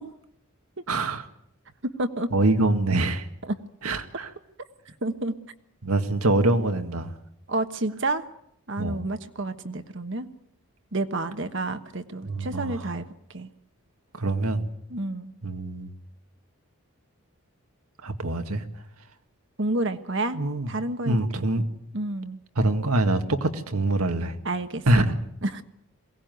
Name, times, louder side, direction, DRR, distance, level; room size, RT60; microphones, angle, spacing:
voice 1, 0.9-1.2 2.3-3.3 3.8-4.3 5.8-7.1 8.8-9.0 12.3-12.7 14.1-14.6 15.4-15.9 18.0-18.6 20.3-20.7 21.1-21.6 22.6-24.4 24.9-25.2, right 2 dB, 85° right, 7 dB, 1.9 m, -24 dB
voice 2, 1.8-2.3 3.4-3.6 5.0-5.3 7.5-8.2 8.7-10.3 10.9-13.0 13.3-13.5 14.9-15.3 19.6-20.4 20.7-21.6 21.9-22.4 24.4-24.9 25.4-25.6, right 2 dB, 55° right, 8 dB, 1.3 m, -29 dB
22.5 x 17.5 x 9.3 m, 0.75 s
head